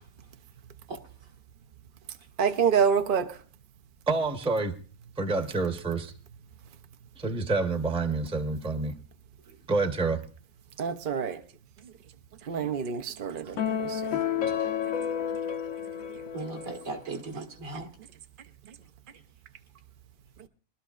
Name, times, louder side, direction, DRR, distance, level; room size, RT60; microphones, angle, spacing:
voice 1, 2.4-3.4 10.8-11.4 12.5-14.0, right 7 dB, 50° right, 0.6 m, -27 dB
voice 2, 4.1-4.7 5.2-6.1 7.2-8.9 9.7-10.2, right 3 dB, 5° right, 0.8 m, -28 dB
sound 1, 13.6-17.1, left 9 dB, 70° left, 1.1 m, -31 dB
voice 3, 16.3-17.9, right 3 dB, 70° right, 2.2 m, -38 dB
22.5 x 12.5 x 2.4 m
omnidirectional pair, 1.5 m